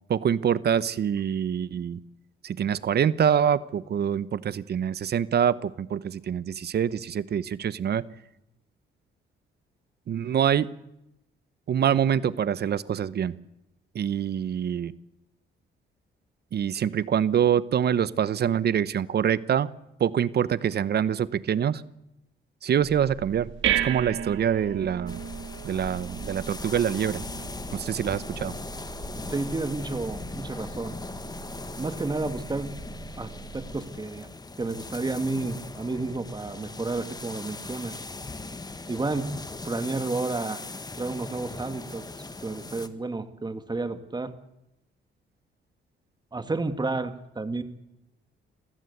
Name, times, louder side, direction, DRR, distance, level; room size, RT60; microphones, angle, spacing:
voice 1, 0.1-2.0 2.4-8.0 10.1-10.7 11.7-13.4 13.9-14.9 16.5-19.7 20.0-21.8 22.6-25.2 25.6-27.2 27.7-28.5, right 8 dB, 55° right, 17 dB, 1.0 m, -25 dB
sound 1, 22.8-33.8, right 10 dB, 75° right, 1.9 m, -36 dB
sound 2, 25.1-42.9, left 3 dB, 20° left, 1.6 m, -39 dB
voice 2, 29.3-30.9 31.8-32.7 33.2-34.3 34.6-37.9 38.9-39.3 39.6-40.6 41.0-42.0 42.4-44.3 46.3-47.6, right 3 dB, 20° right, 9 dB, 2.1 m, -31 dB
26.5 x 15.0 x 8.3 m, 0.87 s
cardioid pair, 90°, 20 cm